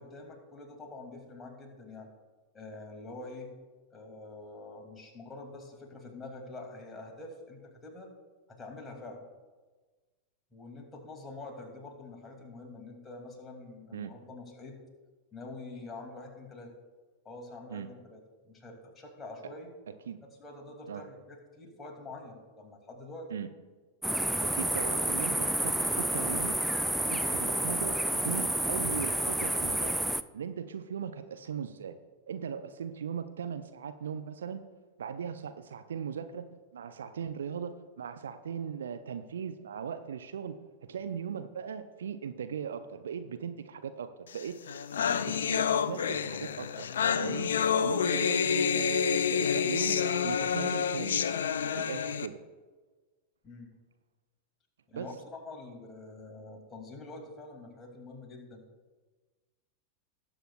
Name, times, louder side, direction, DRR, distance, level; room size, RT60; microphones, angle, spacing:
voice 1, 0.0-2.1 2.5-3.5 3.9-8.1 8.5-9.3 10.5-14.8 15.3-16.7 17.2-19.7 20.4-23.3 53.4-53.7 54.9-58.6, left 2 dB, 15° left, 1 dB, 2.4 m, -46 dB
sound 1, 24.0-30.2, right 1 dB, 5° right, 0.3 m, -30 dB
voice 2, 24.4-26.6 27.0-30.0 30.3-32.0 32.3-34.6 35.0-40.6 40.9-44.6 45.3-46.9 47.2-47.5 47.8-51.2 51.7-52.4 54.9-55.1, right 7 dB, 65° right, 10 dB, 0.5 m, -38 dB
sound 2, 44.4-44.5 44.7-52.3, left 7 dB, 65° left, 0.4 m, -28 dB
19.0 x 8.0 x 2.3 m, 1.3 s
figure-of-eight pair, 90°, 0 cm